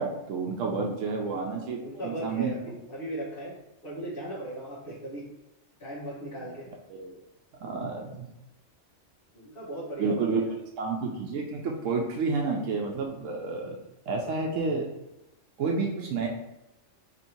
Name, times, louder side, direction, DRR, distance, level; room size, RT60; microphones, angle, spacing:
voice 1, 0.0-2.5 6.9-7.2 7.6-8.3 10.0-10.4 10.8-13.8 14.1-14.9 15.6-16.3, right 4 dB, 90° right, 0 dB, 1.0 m, -30 dB
voice 2, 1.8-3.5 3.8-5.3 5.8-6.7 9.3-10.6, right 1 dB, 50° left, -9 dB, 1.1 m, -38 dB
3.1 x 2.6 x 4.3 m, 0.93 s
omnidirectional pair, 1.3 m